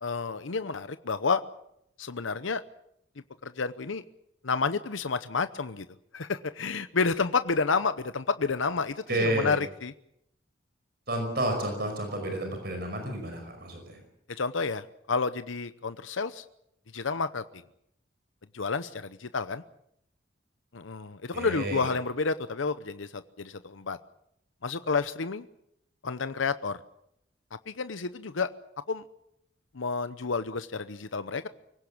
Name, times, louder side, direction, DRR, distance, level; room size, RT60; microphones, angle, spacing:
voice 1, 0.0-1.4 2.0-2.6 3.4-4.0 4.4-5.9 6.1-9.9 14.3-16.4 16.9-17.6 18.5-19.6 20.7-24.0 24.6-25.5 26.0-26.8 27.7-28.5 28.9-29.0 29.7-31.5, left 4 dB, 85° left, 12 dB, 0.8 m, -30 dB
voice 2, 9.1-9.6 11.1-14.0 21.3-21.9, right 1 dB, 50° right, 5 dB, 5.4 m, -30 dB
24.5 x 17.0 x 8.6 m, 0.77 s
head